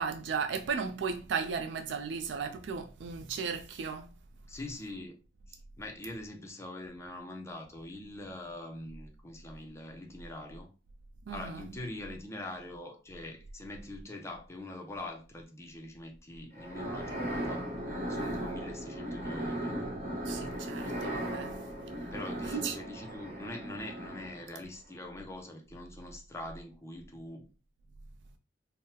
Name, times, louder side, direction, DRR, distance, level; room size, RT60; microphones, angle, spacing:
voice 1, 0.0-4.1 11.3-11.6 20.3-21.5 22.0-22.1 22.5-22.7, right 6 dB, 75° right, 0.4 m, -35 dB
voice 2, 4.5-5.2 5.5-10.7 11.3-17.6 18.1-19.7 22.1-27.5, left 1 dB, 15° left, 0.5 m, -43 dB
sound 1, 16.5-24.6, right 1 dB, 40° right, 1.2 m, -37 dB
3.7 x 2.1 x 2.7 m
head